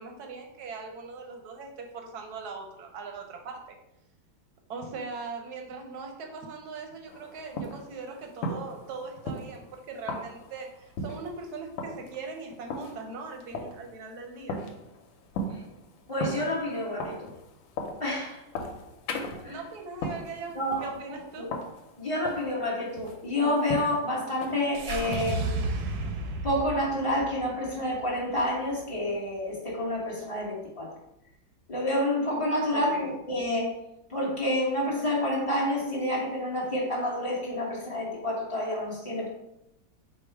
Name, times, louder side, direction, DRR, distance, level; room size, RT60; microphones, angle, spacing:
voice 1, 0.0-3.8 4.7-14.6 19.4-21.5 32.7-33.1, right 4 dB, 70° right, 3 dB, 1.0 m, -40 dB
sound 1, 7.1-25.2, left 1 dB, 85° left, 1.4 m, -38 dB
voice 2, 16.1-17.3 18.0-18.4 19.4-19.6 20.5-20.9 21.4-21.5 22.0-25.7 26.4-30.9 31.7-33.7 34.1-39.3, left 1 dB, 20° left, -6 dB, 0.9 m, -29 dB
sound 2, 24.7-29.1, right 2 dB, 90° right, 1.4 m, -33 dB
4.6 x 2.3 x 4.5 m, 0.87 s
omnidirectional pair, 2.1 m